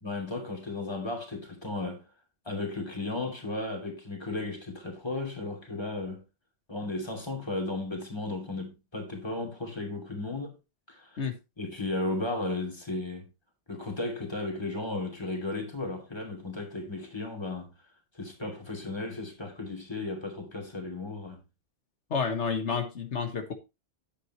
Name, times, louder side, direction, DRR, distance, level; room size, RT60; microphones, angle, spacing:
voice 1, 0.0-2.0 2.4-6.2 6.7-10.6 10.9-11.1 11.6-13.3 13.7-17.7 18.1-21.4, left 2 dB, 25° left, 2.8 m, -35 dB
voice 2, 22.1-23.5, left 5 dB, 85° left, 1.7 m, -30 dB
10.0 x 8.1 x 3.0 m
omnidirectional pair, 1.2 m